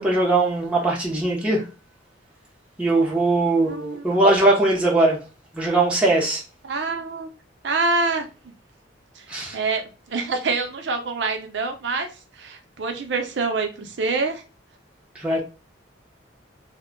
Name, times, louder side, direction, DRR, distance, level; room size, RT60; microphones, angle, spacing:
voice 1, 0.0-1.6 2.8-5.2 5.5-6.4 9.3-9.6 15.1-15.4, right 2 dB, 5° right, 0.6 m, -20 dB
voice 2, 3.6-4.1 6.6-7.3 7.6-8.3 9.2-9.3 9.5-9.8 10.1-12.1 12.4-14.4, right 3 dB, 65° right, 0.6 m, -26 dB
2.2 x 2.1 x 3.6 m
head